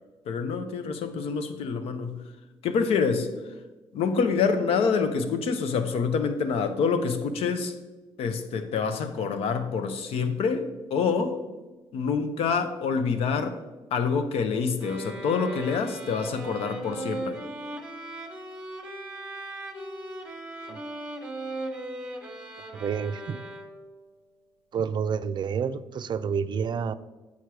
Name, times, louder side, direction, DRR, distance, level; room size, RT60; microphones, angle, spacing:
voice 1, 0.3-2.2 2.6-3.3 3.9-7.7 8.2-11.4 11.9-13.6 13.9-17.4, left 5 dB, 75° left, 9 dB, 0.7 m, -26 dB
sound 1, 14.8-24.0, right 1 dB, 10° right, 1.3 m, -38 dB
voice 2, 22.7-23.4 24.7-27.0, right 6 dB, 50° right, 14 dB, 0.4 m, -29 dB
7.1 x 4.7 x 4.6 m, 1.2 s
supercardioid pair, 70°, 10 cm